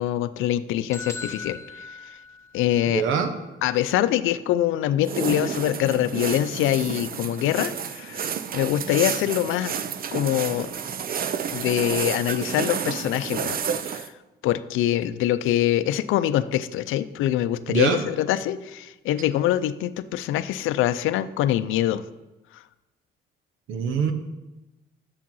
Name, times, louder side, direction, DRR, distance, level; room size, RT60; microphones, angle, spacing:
voice 1, 0.0-1.9 2.5-3.0 3.6-8.3 8.5-9.8 10.1-10.7 11.5-13.6 13.8-14.1 14.4-22.0, left 12 dB, 90° left, 14 dB, 0.5 m, -24 dB
sound 1, 0.9-2.9, left 4 dB, 15° left, 0.7 m, -39 dB
voice 2, 2.9-3.3 17.7-18.0 23.7-24.1, right 6 dB, 85° right, 7 dB, 1.0 m, -23 dB
sound 2, 5.0-14.1, right 7 dB, 50° right, 0.6 m, -30 dB
7.6 x 7.0 x 5.5 m, 1.0 s
cardioid pair, 90°, 20 cm